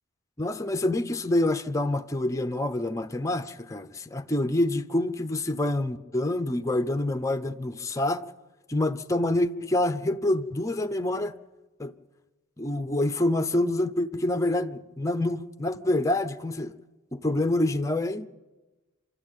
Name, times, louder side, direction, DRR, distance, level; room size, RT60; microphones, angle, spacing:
voice 1, 0.4-8.3 8.7-11.3 11.8-11.9 12.6-16.7 17.1-18.3, left 1 dB, 15° left, 0.7 m, -27 dB
26.0 x 13.0 x 9.1 m
head